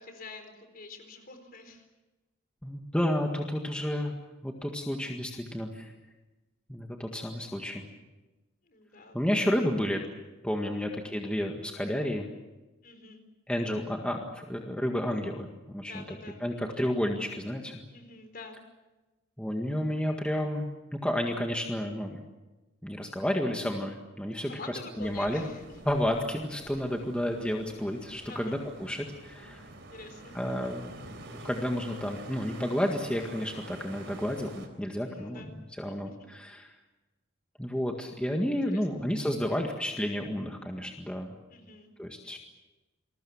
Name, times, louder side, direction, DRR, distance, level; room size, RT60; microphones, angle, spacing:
voice 1, 0.0-1.9 8.6-9.8 10.7-11.0 12.8-13.2 15.8-16.9 17.9-18.6 24.2-25.6 28.3-28.6 29.9-30.4 35.0-35.5 36.1-36.2 38.4-39.1 41.5-41.9, left 3 dB, 45° left, 7 dB, 4.3 m, -47 dB
voice 2, 2.6-5.9 6.7-7.8 9.1-10.0 10.4-12.3 13.5-17.8 19.4-22.2 22.8-25.4 25.8-29.7 30.3-35.5 35.8-36.7 37.6-41.3 42.0-42.4, equal, 5° left, 2 dB, 1.8 m, -31 dB
sound 1, 25.0-34.7, right 2 dB, 60° right, 3.9 m, -48 dB
28.5 x 21.0 x 7.3 m, 1.1 s
head